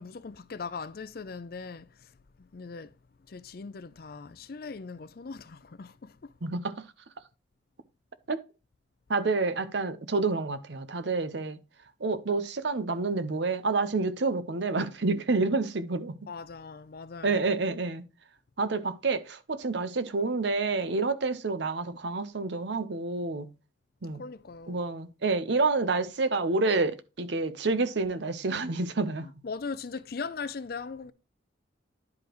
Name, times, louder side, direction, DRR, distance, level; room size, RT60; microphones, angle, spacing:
voice 1, 0.0-2.1 2.4-2.9 3.3-6.3 16.3-17.4 24.2-24.8 29.2-31.1, left 4 dB, 50° left, 0.5 m, -40 dB
voice 2, 6.4-6.9 8.3-8.4 9.1-11.6 12.0-16.2 17.2-18.0 18.6-23.5 24.0-24.2 24.7-29.3, right 3 dB, 70° right, 0.8 m, -28 dB
10.5 x 5.0 x 3.0 m
head